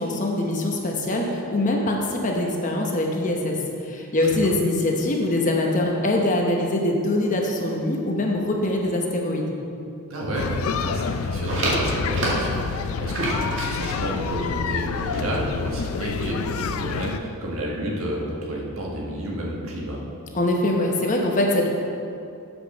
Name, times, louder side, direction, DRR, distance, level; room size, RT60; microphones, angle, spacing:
voice 1, 0.0-3.6 3.8-9.5 20.3-21.7, left 1 dB, 35° left, 0 dB, 0.9 m, -23 dB
voice 2, 10.1-20.0, right 1 dB, 75° right, -3 dB, 1.7 m, -30 dB
sound 1, 10.3-17.2, left 5 dB, 75° left, 0.4 m, -28 dB
sound 2, 11.3-16.4, right 1 dB, 60° right, 2.1 m, -31 dB
8.1 x 5.4 x 6.2 m, 2.6 s
head